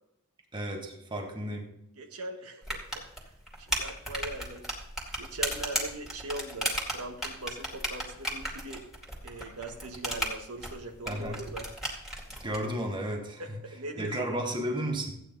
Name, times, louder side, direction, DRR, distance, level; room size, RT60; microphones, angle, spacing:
voice 1, 0.5-1.7 11.1-11.4 12.4-13.4 14.0-15.1, right 1 dB, 20° right, 1 dB, 1.6 m, -33 dB
voice 2, 2.0-3.3 3.6-4.6 5.2-8.8 9.2-11.7 13.4-14.2, right 2 dB, 90° right, 3 dB, 1.5 m, -41 dB
sound 1, 2.6-12.6, equal, ahead, 2.2 m, -35 dB
14.5 x 8.9 x 4.0 m, 0.80 s
head